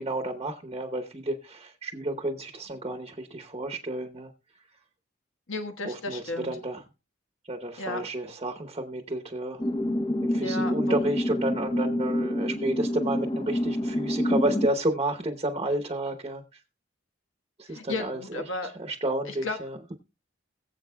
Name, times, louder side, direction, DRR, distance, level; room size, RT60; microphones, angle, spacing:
voice 1, 0.0-4.3 5.8-6.8 7.5-9.6 10.2-16.6 17.6-18.2 18.6-19.8, right 1 dB, 30° right, 0.9 m, -31 dB
voice 2, 5.5-6.6 7.8-8.0 10.4-11.0 17.7-18.7 19.3-19.6, left 2 dB, 85° left, 1.4 m, -34 dB
sound 1, 9.6-14.7, left 1 dB, 25° left, 0.7 m, -27 dB
21.5 x 7.7 x 2.2 m
head